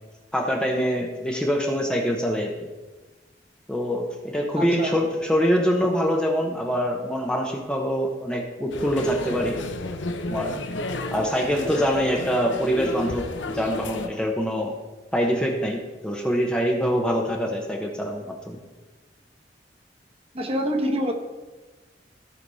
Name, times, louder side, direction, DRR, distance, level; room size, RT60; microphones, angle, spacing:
voice 1, 0.3-2.6 3.7-9.6 10.3-10.6 11.1-13.3 13.5-14.7 15.1-18.6, equal, 5° left, 1 dB, 0.9 m, -24 dB
voice 2, 4.6-5.0 20.3-21.1, equal, 35° right, 3 dB, 1.1 m, -26 dB
sound 1, 8.7-14.1, left 2 dB, 90° left, 0.9 m, -32 dB
15.5 x 5.2 x 4.1 m, 1.2 s
head